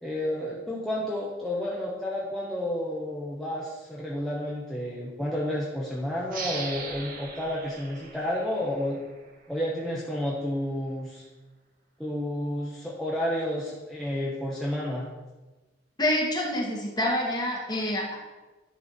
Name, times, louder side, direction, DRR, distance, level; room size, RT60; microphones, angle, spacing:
voice 1, 0.0-9.0 9.5-11.2 12.0-15.1, left 1 dB, ahead, -6 dB, 1.1 m, -31 dB
sound 1, 6.3-9.5, right 4 dB, 45° right, 1.3 m, -39 dB
voice 2, 16.0-18.2, left 1 dB, 20° left, -2 dB, 1.8 m, -27 dB
11.0 x 4.7 x 5.8 m, 1.2 s
head